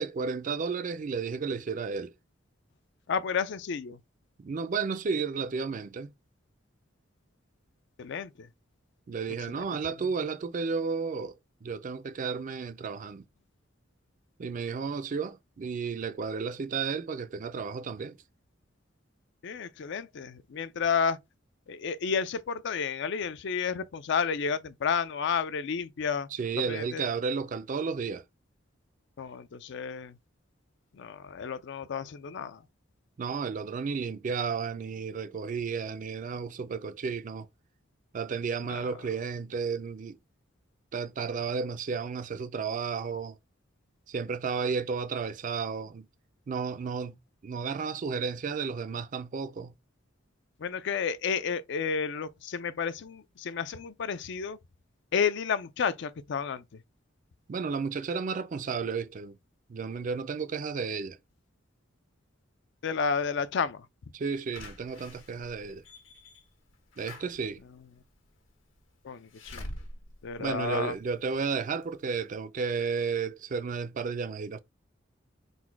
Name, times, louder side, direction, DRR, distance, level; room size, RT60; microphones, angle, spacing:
voice 1, 0.0-2.1 4.4-6.1 9.1-11.4 11.6-13.2 14.4-18.2 26.3-28.2 33.2-37.5 38.1-40.2 40.9-43.4 44.1-46.1 46.5-47.2 47.4-49.7 57.5-59.4 59.7-61.2 64.1-65.8 67.0-67.6 70.4-74.6, right 5 dB, 40° right, 0.4 m, -32 dB
voice 2, 3.1-4.0 8.0-8.5 9.5-9.7 19.4-21.2 21.7-26.3 26.6-27.0 29.2-30.2 30.9-32.6 38.6-38.8 50.6-54.6 55.1-56.6 62.8-63.9 69.0-69.7 70.2-70.9, left 6 dB, 65° left, 0.4 m, -31 dB
Slam / Alarm, 64.5-71.3 71.8-71.9 72.2-72.3, left 1 dB, 80° left, 1.5 m, -46 dB
3.9 x 2.2 x 4.5 m
head